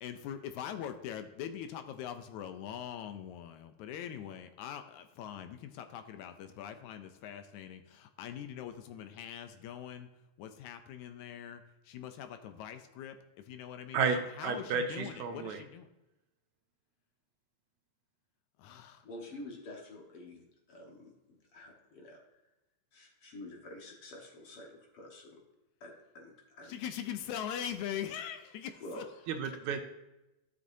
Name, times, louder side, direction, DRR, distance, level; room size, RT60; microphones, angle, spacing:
voice 1, 0.0-10.1 10.4-15.9 18.6-19.1 26.6-29.0, left 9 dB, 80° left, 8 dB, 2.0 m, -42 dB
voice 2, 13.9-15.6 29.3-29.8, right 5 dB, 80° right, 6 dB, 2.0 m, -32 dB
voice 3, 19.0-21.1 21.5-22.4 22.9-25.4 25.8-26.8 28.8-29.1, left 1 dB, 55° left, -1 dB, 2.0 m, -48 dB
12.0 x 6.2 x 2.7 m, 0.95 s
omnidirectional pair, 3.5 m